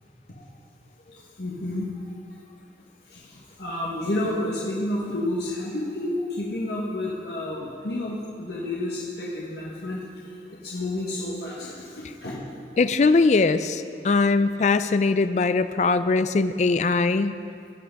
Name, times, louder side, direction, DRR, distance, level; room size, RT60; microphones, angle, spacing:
voice 1, 1.1-2.4 3.1-10.3 10.6-12.4, left 1 dB, 70° left, -5 dB, 1.4 m, -30 dB
voice 2, 12.8-17.3, left 3 dB, 40° left, 12 dB, 0.4 m, -21 dB
17.0 x 5.7 x 5.3 m, 2.4 s
head